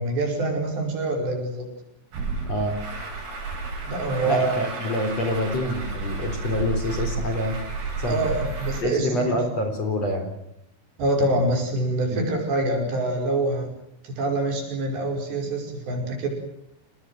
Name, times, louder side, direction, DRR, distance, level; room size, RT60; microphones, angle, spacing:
voice 1, 0.0-1.7 3.9-4.5 8.1-9.4 11.0-13.7 14.0-16.3, right 2 dB, 60° right, 2 dB, 7.4 m, -25 dB
Truck, 2.1-8.8, right 3 dB, 80° right, 9.9 m, -32 dB
voice 2, 4.2-7.6 8.0-8.3 8.8-10.3 12.1-12.2, left 1 dB, 35° left, 6 dB, 4.6 m, -26 dB
29.5 x 19.0 x 7.9 m, 0.79 s
omnidirectional pair, 5.7 m